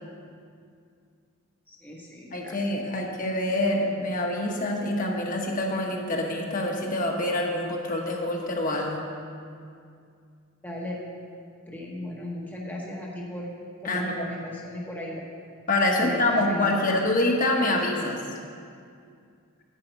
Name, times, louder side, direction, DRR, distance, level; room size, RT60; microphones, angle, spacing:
voice 1, 1.7-2.6 10.6-11.0 11.7-13.5 13.8-15.2 16.0-17.0 17.6-18.1, left 1 dB, 10° left, -3 dB, 0.8 m, -37 dB
voice 2, 2.3-9.1 13.8-14.3 15.7-18.2, left 1 dB, 40° left, 0 dB, 1.0 m, -26 dB
10.0 x 4.8 x 7.9 m, 2.3 s
head